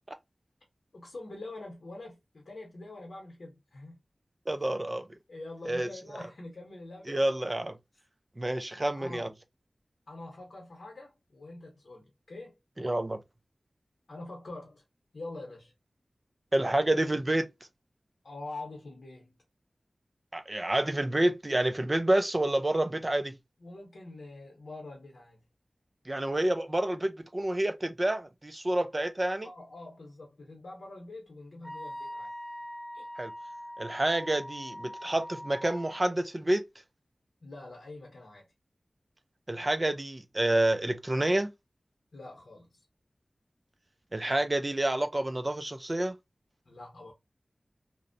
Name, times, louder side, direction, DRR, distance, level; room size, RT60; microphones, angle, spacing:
voice 1, 0.9-4.0 5.3-7.2 8.5-9.3 10.1-12.6 14.1-14.8 15.1-15.7 18.2-19.4 23.6-25.4 29.4-32.3 32.9-33.1 37.4-38.5 42.1-42.8 46.7-47.1, left 2 dB, 85° left, 0.8 m, -45 dB
voice 2, 4.5-5.1 5.7-5.9 7.1-7.8 8.4-9.3 12.8-13.2 16.5-17.5 20.3-23.4 26.1-29.5 33.2-33.3 33.8-36.6 39.5-41.5 44.1-46.1, right 1 dB, 30° right, 0.4 m, -28 dB
Wind instrument woodwind instrument, 31.6-36.0, equal, 5° left, 0.8 m, -42 dB
2.5 x 2.0 x 2.5 m
wide cardioid pair, 65°, 0 cm